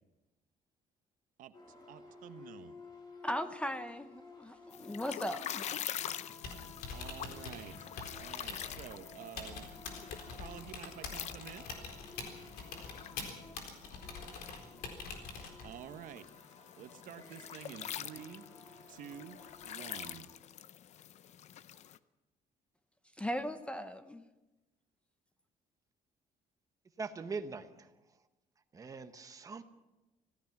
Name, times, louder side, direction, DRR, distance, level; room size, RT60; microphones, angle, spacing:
sound 1, 1.5-20.2, left 3 dB, 30° left, 3.5 m, -55 dB
voice 1, 1.9-2.7 6.9-7.9 8.2-9.7 10.3-11.7 15.6-16.3 16.8-18.5 18.9-20.3, right 9 dB, 65° right, 10 dB, 1.1 m, -49 dB
voice 2, 3.2-5.6 23.2-24.2, equal, 10° left, 10 dB, 0.7 m, -38 dB
sound 2, 4.7-22.0, left 10 dB, 50° left, 0.7 m, -46 dB
Typing, 6.3-15.9, left 4 dB, 90° left, 4.0 m, -46 dB
voice 3, 27.0-27.7 28.7-29.6, right 4 dB, 25° right, 8 dB, 1.2 m, -41 dB
26.0 x 17.0 x 6.0 m, 1.1 s
cardioid pair, 170°, 15 cm